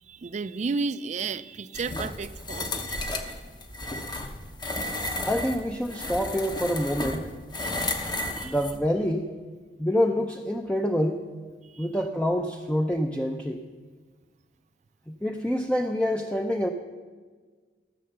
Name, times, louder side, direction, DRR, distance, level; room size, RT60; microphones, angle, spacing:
voice 1, 0.0-3.1 7.6-8.5 11.6-11.9, right 4 dB, 40° right, 15 dB, 0.4 m, -34 dB
sound 1, 1.7-8.8, left 1 dB, 25° left, 0.9 m, -33 dB
voice 2, 5.2-7.3 8.4-9.3 9.8-11.2 11.8-13.7 15.1-16.7, equal, 5° left, 3 dB, 0.5 m, -26 dB
14.5 x 6.8 x 6.7 m, 1.5 s
head